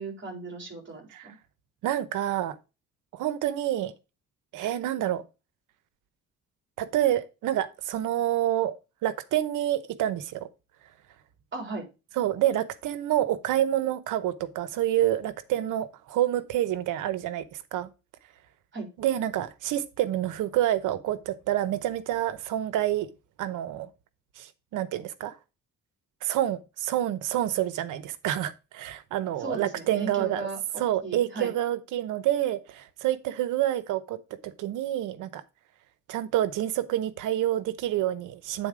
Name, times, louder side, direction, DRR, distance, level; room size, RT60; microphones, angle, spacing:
voice 1, 0.0-1.3 11.5-11.9 18.7-18.9 29.4-30.6 31.0-31.5, right 3 dB, 40° right, 4.0 m, -36 dB
voice 2, 1.8-2.6 3.1-3.9 4.5-5.2 6.8-8.8 9.0-10.5 12.2-17.9 19.0-23.1 23.4-23.9 24.4-25.4 26.2-30.5 30.8-34.2 34.4-35.4 36.1-38.7, right 12 dB, 85° right, 0.9 m, -28 dB
9.0 x 4.1 x 4.9 m
cardioid pair, 90°, 30 cm